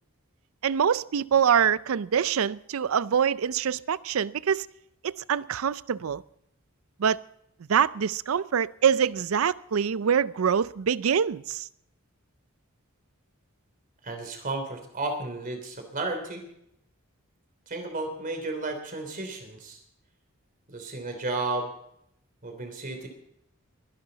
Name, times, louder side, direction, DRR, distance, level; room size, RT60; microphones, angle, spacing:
voice 1, 0.6-4.7 5.0-6.2 7.0-7.2 7.7-11.7, right 7 dB, 75° right, 0.5 m, -25 dB
voice 2, 14.0-16.4 17.7-19.8 20.7-21.7 22.4-23.1, right 2 dB, 40° right, 3.1 m, -33 dB
22.5 x 11.0 x 4.0 m
head